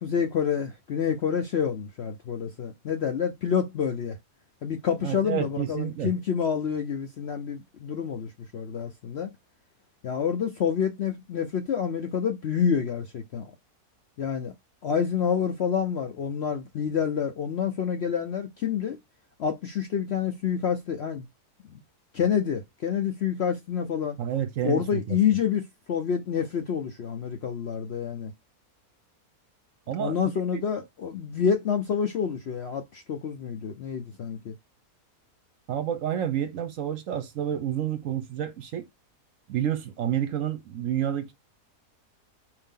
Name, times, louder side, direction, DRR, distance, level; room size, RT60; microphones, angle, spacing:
voice 1, 0.0-4.2 4.6-9.3 10.0-13.5 14.2-14.5 14.8-19.0 19.4-21.2 21.7-21.8 22.1-24.2 24.6-25.6 25.9-28.3 30.0-34.5, left 7 dB, 60° left, 0.7 m, -28 dB
voice 2, 5.0-6.1 24.2-25.2 29.9-30.2 35.7-38.9 39.5-41.3, right 10 dB, 65° right, 0.9 m, -29 dB
4.7 x 2.8 x 3.6 m
omnidirectional pair, 1.7 m